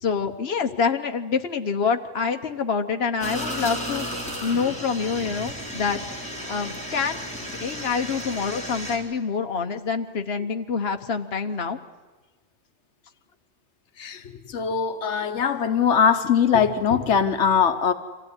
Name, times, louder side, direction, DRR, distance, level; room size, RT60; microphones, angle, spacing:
voice 1, 0.0-4.1 4.4-6.0 6.5-7.3 7.6-11.8, left 5 dB, 65° left, 6 dB, 1.4 m, -26 dB
sound 1, 3.2-9.0, equal, 5° left, 3.9 m, -33 dB
voice 2, 14.5-17.9, left 7 dB, 90° left, 8 dB, 1.3 m, -21 dB
25.5 x 15.5 x 9.7 m, 1.2 s
omnidirectional pair, 1.2 m